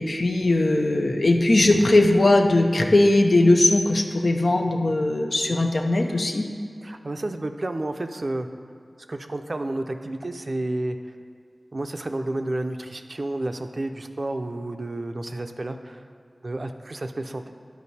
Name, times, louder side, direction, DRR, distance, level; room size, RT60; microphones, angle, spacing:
voice 1, 0.0-6.5, left 2 dB, 75° left, 3 dB, 0.6 m, -19 dB
voice 2, 6.8-8.5 9.1-11.0 11.7-16.1 16.4-17.5, right 2 dB, 55° right, 6 dB, 0.5 m, -31 dB
10.5 x 4.7 x 4.2 m, 2.1 s
cardioid pair, 40°, 0 cm